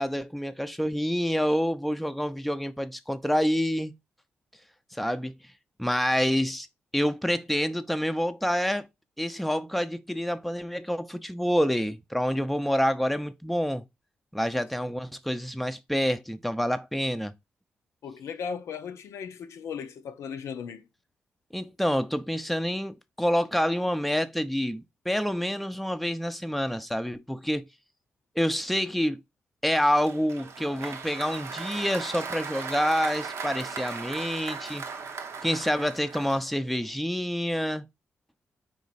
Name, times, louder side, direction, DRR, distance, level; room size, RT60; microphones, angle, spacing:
voice 1, 0.0-3.9 5.0-5.3 5.8-6.7 6.9-8.9 9.2-13.8 14.3-17.3 21.5-27.6 28.4-29.2 29.6-34.8 35.4-37.9, equal, ahead, 0.5 m, -27 dB
voice 2, 18.0-20.9, left 6 dB, 75° left, 0.5 m, -37 dB
Applause, 29.7-36.8, right 5 dB, 70° right, 0.7 m, -38 dB
4.1 x 3.1 x 4.0 m
supercardioid pair, 45°, 5 cm